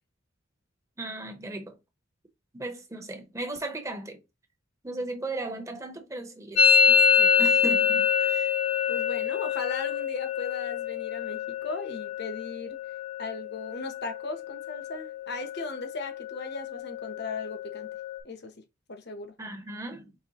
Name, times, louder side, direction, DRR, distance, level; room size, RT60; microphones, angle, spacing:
voice 1, 1.0-1.7 2.5-4.2 4.8-6.6 6.9-8.5 19.4-20.1, right 2 dB, 15° right, 0.9 m, -36 dB
Musical instrument, 6.6-14.2 14.5-15.0 15.3-15.9 16.2-18.2, left 6 dB, 75° left, 1.5 m, -26 dB
voice 2, 8.9-12.8 13.2-17.9 18.2-18.5 18.9-19.3, left 3 dB, 55° left, 0.9 m, -37 dB
5.1 x 3.2 x 2.9 m
head